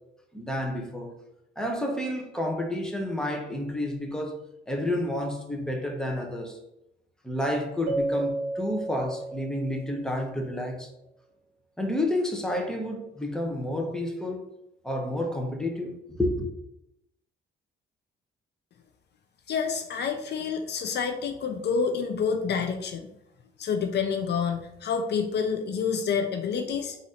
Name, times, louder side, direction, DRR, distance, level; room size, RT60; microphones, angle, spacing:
voice 1, 0.3-1.1 1.6-4.4 4.7-6.6 7.2-10.9 11.8-14.5 14.8-16.5, left 1 dB, 5° left, 0.9 m, -30 dB
Keyboard (musical), 7.9-10.3, right 2 dB, 45° right, 1.2 m, -32 dB
voice 2, 19.5-23.1 23.6-27.0, left 6 dB, 60° left, 0.6 m, -28 dB
4.0 x 2.7 x 4.8 m
cardioid pair, 90°, 20 cm